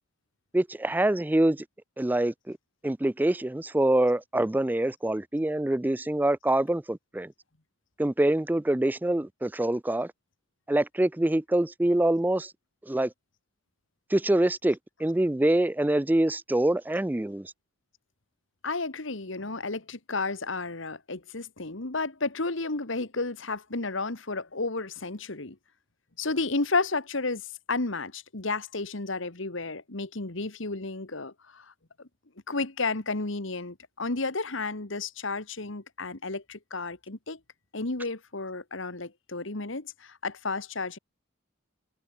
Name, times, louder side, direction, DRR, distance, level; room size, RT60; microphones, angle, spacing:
voice 1, 0.5-1.6 2.0-2.6 2.8-7.3 8.0-10.1 10.7-12.5 12.9-13.1 14.1-17.5, right 1 dB, 10° right, 0.3 m, -25 dB
voice 2, 18.6-25.6 26.2-27.4 27.7-31.7 32.5-37.4 37.7-41.0, left 3 dB, 65° left, 1.8 m, -32 dB
head